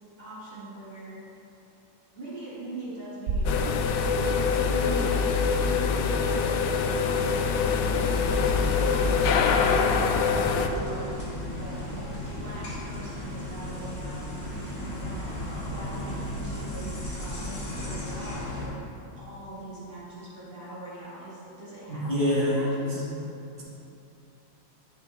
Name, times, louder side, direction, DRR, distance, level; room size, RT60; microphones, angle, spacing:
voice 1, 0.2-1.2 2.2-3.8 4.1-18.8 19.2-23.1, right 2 dB, 30° right, -10 dB, 2.3 m, -41 dB
sound 1, 3.3-5.3, right 1 dB, 65° right, 0.9 m, -33 dB
sound 2, 3.5-10.7, left 5 dB, 75° left, 1.1 m, -24 dB
sound 3, 8.1-18.7, left 1 dB, 55° left, 2.0 m, -35 dB
voice 2, 21.9-23.1, left 1 dB, 20° left, -11 dB, 1.6 m, -26 dB
10.5 x 5.8 x 3.6 m, 2.8 s
omnidirectional pair, 2.1 m